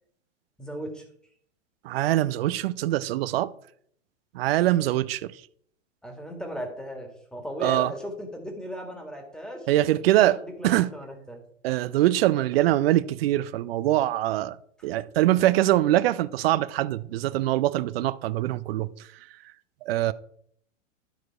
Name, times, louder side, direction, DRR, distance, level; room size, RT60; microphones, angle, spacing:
voice 1, 0.6-1.0 6.0-9.7 10.2-11.4, equal, ahead, 1.8 m, -37 dB
voice 2, 1.8-3.5 4.3-5.3 7.6-7.9 9.7-10.4 10.6-10.9 11.6-14.6 14.8-18.9 19.8-20.1, right 14 dB, 50° right, 0.5 m, -23 dB
12.0 x 4.6 x 4.6 m
figure-of-eight pair, 105°, 38 cm